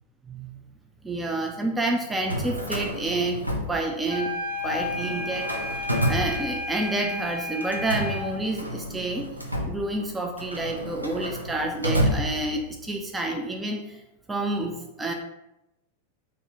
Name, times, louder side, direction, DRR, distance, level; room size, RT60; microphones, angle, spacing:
voice 1, 1.0-3.4 3.7-4.3 4.6-9.4 9.7-14.0 14.3-15.1, right 2 dB, 10° right, 2 dB, 0.3 m, -29 dB
Drawer open or close, 2.1-4.3 4.6-7.0 7.6-12.9, equal, 85° right, 0.5 m, -30 dB
sound 1, 4.1-8.3, left 2 dB, 50° right, 0.8 m, -32 dB
2.7 x 2.5 x 3.3 m, 0.90 s
figure-of-eight pair, 90°, 0 cm